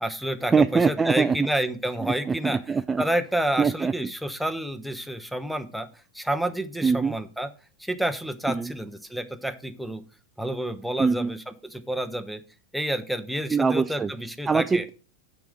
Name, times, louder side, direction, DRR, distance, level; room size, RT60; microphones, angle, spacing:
voice 1, 0.0-2.6 3.0-5.9 6.1-7.5 7.8-10.0 10.4-12.4 12.7-14.8, right 1 dB, ahead, 0.9 m, -29 dB
voice 2, 0.5-1.5 2.0-3.0 3.6-4.1 6.8-7.2 8.5-8.7 11.0-11.3 13.5-14.1 14.5-14.9, right 5 dB, 15° right, 0.3 m, -23 dB
7.6 x 5.2 x 6.3 m
hypercardioid pair, 115°, 0 cm